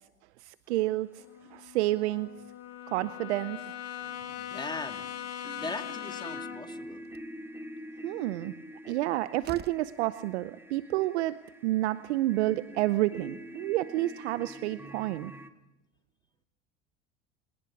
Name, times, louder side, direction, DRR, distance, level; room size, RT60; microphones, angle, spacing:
voice 1, 0.4-1.1 1.5-2.3 2.9-3.8 8.0-8.5 8.9-11.4 11.6-15.3, right 16 dB, 80° right, 15 dB, 0.8 m, -29 dB
Brass instrument, 1.2-6.7, left 10 dB, 50° left, 2.1 m, -41 dB
voice 2, 4.4-5.1 5.6-7.0, left 3 dB, 15° left, 7 dB, 2.3 m, -39 dB
sound 1, 5.0-15.5, equal, 5° right, 2.4 m, -46 dB
Slam, 7.0-7.4 8.9-9.0 9.4-10.0, right 10 dB, 30° right, 0.8 m, -46 dB
25.5 x 19.0 x 8.5 m, 0.97 s
hypercardioid pair, 80°, 33 cm